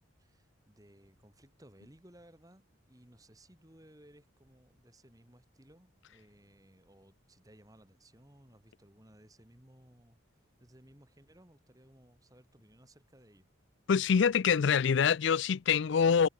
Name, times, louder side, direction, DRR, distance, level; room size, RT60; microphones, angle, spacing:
voice 1, 0.2-10.2 10.6-13.5, right 1 dB, 15° right, 2.6 m, -60 dB
voice 2, 13.9-16.3, left 6 dB, 60° left, 0.4 m, -25 dB
head